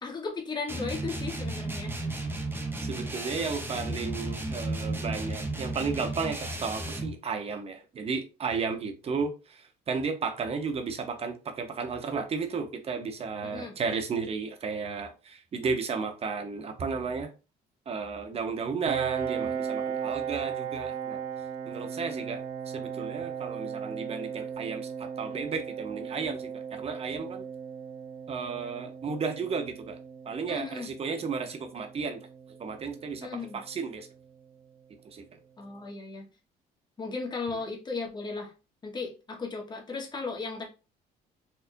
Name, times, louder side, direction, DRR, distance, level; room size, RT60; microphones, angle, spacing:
voice 1, 0.0-1.9 13.4-13.8 30.5-30.9 33.2-33.6 35.6-36.3 37.0-38.5 38.8-40.6, left 4 dB, 25° left, 1.2 m, -36 dB
sound 1, 0.7-7.2, right 2 dB, 10° right, 0.9 m, -34 dB
voice 2, 2.8-17.3 17.9-21.2 21.7-22.4 22.7-27.4 28.3-30.0 30.3-32.2 32.6-33.3 33.5-34.1 35.1-35.2 37.5-37.6, right 5 dB, 35° right, 0.8 m, -33 dB
Piano, 18.8-34.2, right 7 dB, 70° right, 0.6 m, -37 dB
4.4 x 2.5 x 2.6 m
cardioid pair, 110°, 17 cm